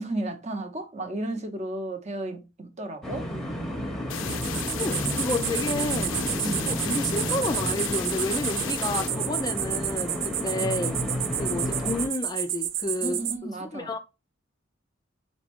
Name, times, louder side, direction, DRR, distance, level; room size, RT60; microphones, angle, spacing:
voice 1, 0.0-3.3 6.4-6.7 13.0-14.0, right 2 dB, 35° right, 0.8 m, -33 dB
sound 1, 3.0-12.1, equal, ahead, 0.8 m, -32 dB
sound 2, 4.1-9.1, left 9 dB, 80° left, 0.4 m, -35 dB
sound 3, 4.2-13.4, right 11 dB, 80° right, 0.5 m, -31 dB
voice 2, 4.5-11.0 11.4-14.0, left 2 dB, 20° left, 0.4 m, -31 dB
4.2 x 3.6 x 3.5 m
head